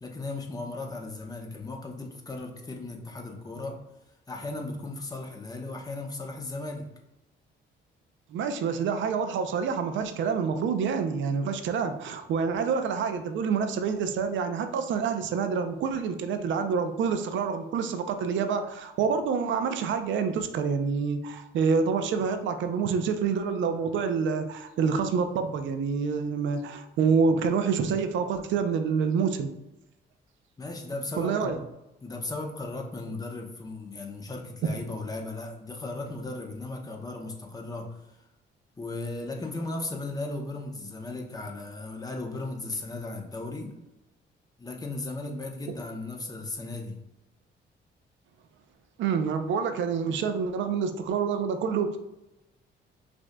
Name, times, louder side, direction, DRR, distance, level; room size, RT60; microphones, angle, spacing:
voice 1, 0.0-3.8 4.3-6.9 30.6-31.6 32.0-38.3 38.8-43.8 44.6-47.0, left 2 dB, 20° left, 2 dB, 0.8 m, -36 dB
voice 2, 8.3-29.5 31.2-31.6 49.0-52.0, right 6 dB, 75° right, 8 dB, 0.5 m, -27 dB
6.0 x 2.6 x 2.2 m, 0.94 s
cardioid pair, 90°, 20 cm